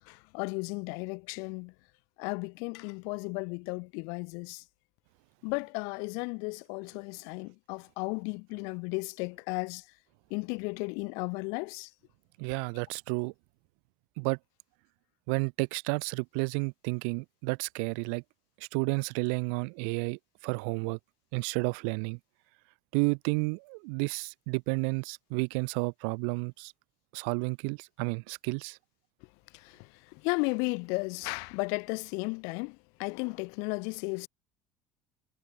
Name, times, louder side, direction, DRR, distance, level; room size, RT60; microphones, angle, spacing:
voice 1, 0.1-1.7 2.2-4.6 5.4-9.8 10.3-11.9 29.6-29.7 30.2-34.3, left 34 dB, 70° left, 1.1 m, -34 dB
voice 2, 12.4-13.3 14.2-14.4 15.3-18.2 18.7-21.0 21.3-22.2 22.9-26.7 27.1-28.8, right 40 dB or more, 85° right, 0.9 m, -31 dB
cardioid pair, 180°, 6 cm